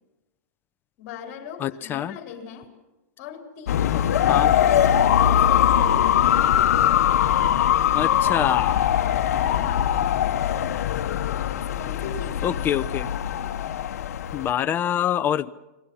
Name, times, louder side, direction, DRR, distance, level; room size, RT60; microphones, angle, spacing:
voice 1, 1.0-2.7 3.2-6.6 8.0-8.5 9.5-9.9 11.3-12.6, left 6 dB, 45° left, 4 dB, 4.3 m, -39 dB
voice 2, 1.6-2.2 4.3-4.5 7.9-8.8 12.4-13.1 14.3-15.5, left 10 dB, 25° left, 12 dB, 0.8 m, -25 dB
sound 1, 3.7-14.5, left 10 dB, 75° left, 1.2 m, -21 dB
29.5 x 21.5 x 5.7 m, 1.0 s
hypercardioid pair, 135°, 9 cm